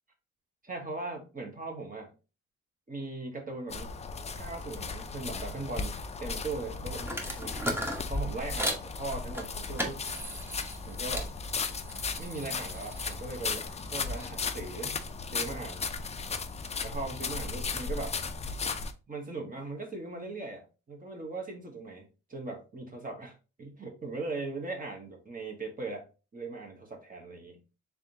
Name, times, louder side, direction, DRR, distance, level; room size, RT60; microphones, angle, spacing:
voice 1, 0.6-2.1 2.9-4.0 4.4-7.6 8.1-10.0 10.9-11.3 12.2-15.0 15.3-15.9 16.8-18.2 19.1-27.6, right 3 dB, 30° right, 2 dB, 1.1 m, -39 dB
sound 1, 3.7-18.9, left 4 dB, 20° left, 0.4 m, -36 dB
sound 2, 7.0-8.9 9.3-11.3 11.7-14.3, equal, 5° right, 0.9 m, -37 dB
3.5 x 3.5 x 2.7 m, 0.31 s
cardioid pair, 90°, 30 cm